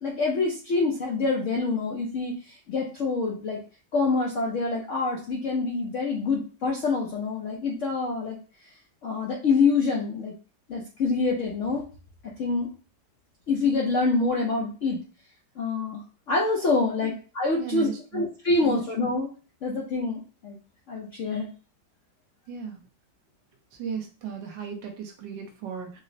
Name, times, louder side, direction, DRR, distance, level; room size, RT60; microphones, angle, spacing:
voice 1, 0.0-3.6 3.9-8.4 9.0-10.3 10.7-11.9 12.4-12.7 13.5-15.0 15.6-16.0 16.3-17.9 18.1-19.3 19.6-20.6 20.9-21.5, left 3 dB, 70° left, -1 dB, 0.7 m, -26 dB
voice 2, 17.6-18.3 18.6-18.8 22.5-22.8 23.8-26.0, right 7 dB, 80° right, 3 dB, 1.4 m, -35 dB
4.9 x 2.0 x 2.6 m, 0.35 s
omnidirectional pair, 1.9 m